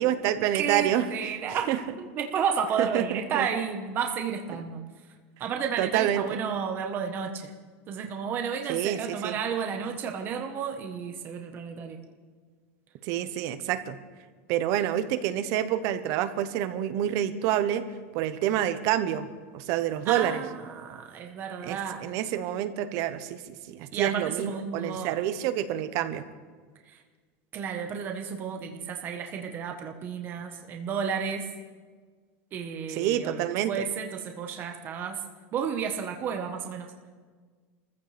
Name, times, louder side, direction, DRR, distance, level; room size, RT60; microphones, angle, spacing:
voice 1, 0.0-1.1 1.5-1.8 2.8-3.5 5.8-6.2 8.7-9.4 13.0-14.0 14.5-17.9 18.1-19.3 19.5-20.4 21.6-26.2 32.9-33.8, right 11 dB, 45° right, 11 dB, 1.0 m, -28 dB
voice 2, 0.5-1.7 2.0-4.8 5.4-7.5 7.9-12.0 20.1-22.0 23.9-25.1 26.9-27.0 27.5-31.5 32.5-35.2 35.5-36.9, right 7 dB, 30° right, 3 dB, 1.3 m, -32 dB
27.0 x 15.0 x 3.5 m, 1.5 s
supercardioid pair, 160°, 7 cm